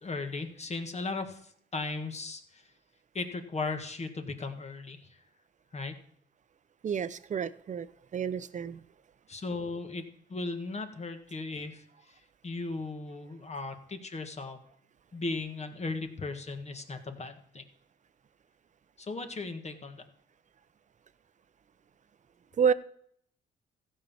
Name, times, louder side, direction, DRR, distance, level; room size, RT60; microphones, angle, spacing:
voice 1, 0.0-2.6 3.1-5.2 5.7-6.0 9.3-12.2 12.4-14.6 15.1-17.6 19.0-20.0, left 3 dB, 35° left, 7 dB, 1.7 m, -37 dB
voice 2, 6.8-7.9 8.1-8.8 22.6-22.7, right 7 dB, 40° right, 15 dB, 0.7 m, -29 dB
14.5 x 5.6 x 7.2 m, 0.66 s
cardioid pair, 90°, 20 cm